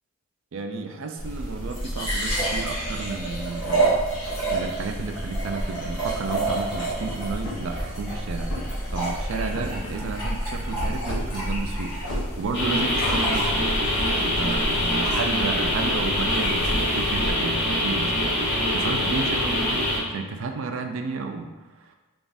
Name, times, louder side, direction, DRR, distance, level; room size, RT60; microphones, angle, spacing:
voice 1, 0.5-4.0 4.2-13.6 14.1-22.0, right 4 dB, 60° right, 4 dB, 0.4 m, -32 dB
sound 1, 1.2-17.3, right 1 dB, 25° left, 1.5 m, -29 dB
sound 2, 7.4-7.8 8.4-8.9 9.5-9.9 11.0-11.3 12.0-12.3 13.0-13.2, left 1 dB, 75° left, 1.3 m, -32 dB
sound 3, 12.5-20.0, left 1 dB, 50° left, 1.4 m, -24 dB
3.3 x 2.4 x 3.9 m, 1.2 s
head